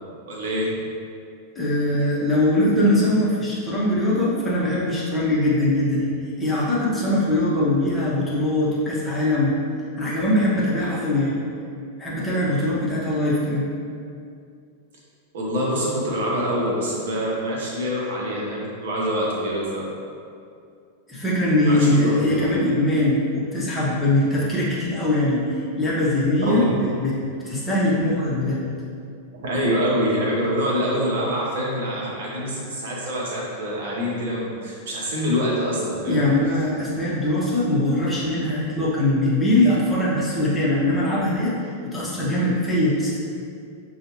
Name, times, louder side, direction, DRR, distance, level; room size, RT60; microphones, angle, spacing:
voice 1, 0.3-0.8 15.3-19.9 21.7-22.4 26.4-26.7 29.3-36.3, equal, 60° right, -4 dB, 1.0 m, -25 dB
voice 2, 1.5-6.1 6.4-9.6 10.0-11.4 12.0-13.7 21.1-27.2 27.4-28.6 36.1-41.5 41.8-43.2, left 1 dB, 10° left, -8 dB, 0.9 m, -21 dB
6.5 x 2.4 x 2.9 m, 2.4 s
figure-of-eight pair, 90°, 0 cm